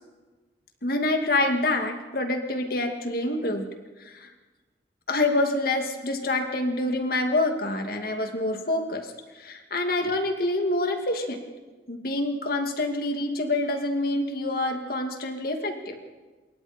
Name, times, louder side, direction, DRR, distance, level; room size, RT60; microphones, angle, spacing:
voice 1, 0.8-3.6 4.0-4.3 5.1-11.4 11.9-16.0, left 2 dB, 55° left, 4 dB, 2.5 m, -27 dB
27.0 x 22.5 x 4.5 m, 1.3 s
head